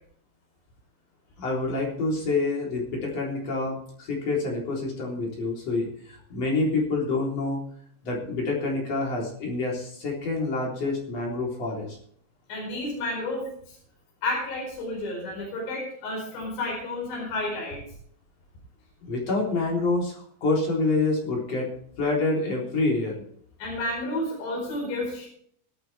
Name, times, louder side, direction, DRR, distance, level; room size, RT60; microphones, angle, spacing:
voice 1, 1.4-7.6 8.0-12.0 19.0-21.7 22.0-23.2, left 3 dB, 35° left, -3 dB, 4.3 m, -27 dB
voice 2, 12.5-13.8 14.2-17.8 23.6-25.3, left 2 dB, 60° left, -1 dB, 6.8 m, -31 dB
23.0 x 9.1 x 3.4 m, 0.64 s
omnidirectional pair, 5.6 m